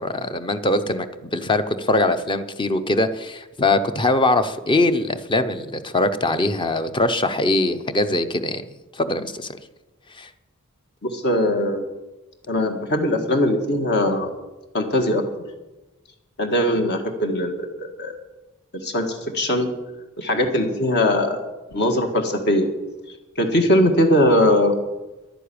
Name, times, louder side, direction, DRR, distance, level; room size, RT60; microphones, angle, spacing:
voice 1, 0.0-8.6 8.9-9.6 10.2-10.3, left 2 dB, 25° left, 10 dB, 0.8 m, -22 dB
voice 2, 11.0-11.8 12.5-14.3 14.7-15.2 16.4-18.2 18.7-19.7 20.2-21.4 21.7-22.7 23.4-24.7, left 1 dB, 50° left, 4 dB, 1.8 m, -20 dB
11.0 x 10.0 x 8.7 m, 1.1 s
head